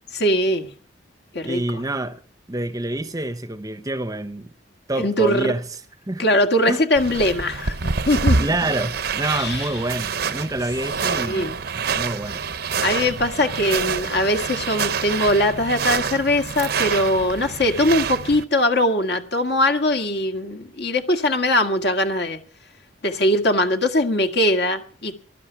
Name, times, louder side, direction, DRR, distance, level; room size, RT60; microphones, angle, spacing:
voice 1, 0.1-0.7 1.3-1.8 5.0-5.5 6.2-8.6 9.3-9.7 11.0-11.5 12.8-22.4 23.0-25.1, left 1 dB, 60° left, 2.0 m, -21 dB
voice 2, 1.4-2.2 2.5-4.5 4.9-5.6 6.1-6.3 6.7-6.8 8.4-12.4, right 2 dB, 20° right, 0.8 m, -27 dB
sound 1, 7.0-18.4, right 5 dB, 55° right, 0.8 m, -26 dB
20.0 x 12.5 x 4.7 m
head